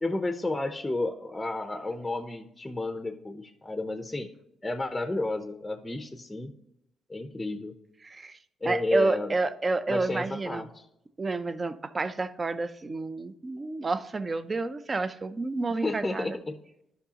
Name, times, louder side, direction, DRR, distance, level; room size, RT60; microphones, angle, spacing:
voice 1, 0.0-4.3 4.6-6.5 7.1-7.7 8.6-9.3 9.9-10.9 15.7-16.6, left 2 dB, 10° left, 0.6 m, -32 dB
voice 2, 8.0-8.4 8.6-10.7 11.2-16.3, right 3 dB, 30° right, 0.5 m, -29 dB
11.5 x 5.5 x 2.8 m
cardioid pair, 90°, 0 cm